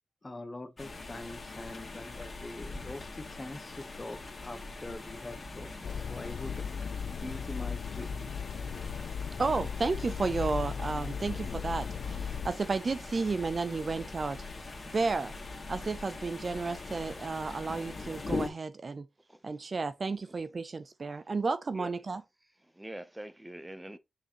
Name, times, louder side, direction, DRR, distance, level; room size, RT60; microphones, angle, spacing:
voice 1, 0.2-5.7 6.1-6.6 7.2-8.3, left 2 dB, 20° left, 1.0 m, -43 dB
sound 1, 0.8-18.5, left 3 dB, 40° left, 2.3 m, -42 dB
sound 2, 5.8-12.5, left 7 dB, 75° left, 0.5 m, -37 dB
voice 2, 9.4-14.4 14.9-15.3 15.7-19.1 19.4-22.2, right 4 dB, 35° right, 0.5 m, -32 dB
voice 3, 22.7-24.0, right 1 dB, 10° right, 0.8 m, -44 dB
6.6 x 6.4 x 3.0 m
wide cardioid pair, 120°, 0 cm